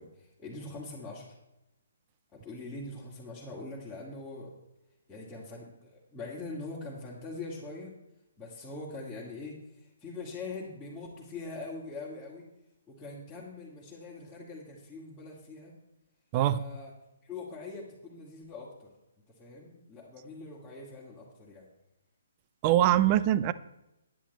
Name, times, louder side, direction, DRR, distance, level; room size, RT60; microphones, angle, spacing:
voice 1, 0.0-1.3 2.3-4.5 5.1-7.9 8.4-12.5 12.9-15.7 16.5-16.9 17.2-18.9 19.3-21.7, left 3 dB, 10° left, -9 dB, 2.3 m, -43 dB
voice 2, 22.6-23.5, right 12 dB, 30° right, 16 dB, 0.5 m, -23 dB
10.5 x 10.0 x 4.2 m, 0.91 s
figure-of-eight pair, 130°, 0 cm